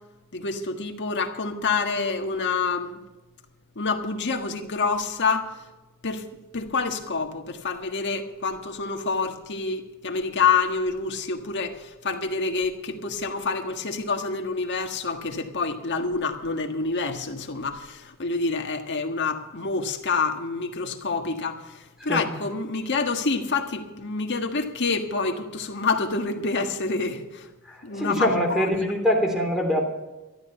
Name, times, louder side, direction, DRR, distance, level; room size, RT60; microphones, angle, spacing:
voice 1, 0.3-3.0 3.7-5.5 6.0-6.2 6.5-27.5 27.8-28.6, left 4 dB, 55° left, 3 dB, 1.6 m, -27 dB
voice 2, 27.6-29.8, equal, ahead, 2 dB, 3.1 m, -24 dB
13.0 x 11.5 x 5.6 m, 1.1 s
head